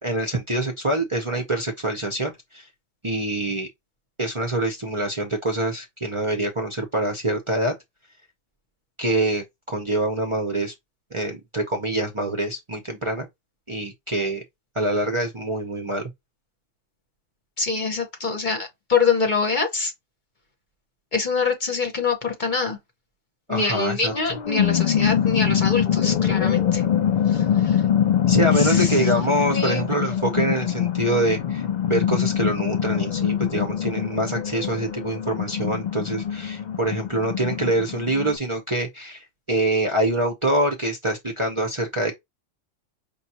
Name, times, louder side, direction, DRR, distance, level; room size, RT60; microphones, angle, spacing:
voice 1, 0.0-2.7 3.0-3.7 4.2-7.7 9.0-10.7 11.1-13.3 13.7-14.4 14.8-16.1 23.5-24.4 28.3-42.1, right 1 dB, 30° right, 0.6 m, -25 dB
voice 2, 17.6-19.9 21.1-22.8 23.5-26.8 27.3-27.8 28.5-29.1 29.5-29.9, left 4 dB, 45° left, 0.9 m, -25 dB
sound 1, 24.1-38.4, left 9 dB, 65° left, 0.4 m, -23 dB
5.2 x 2.3 x 2.8 m
omnidirectional pair, 1.3 m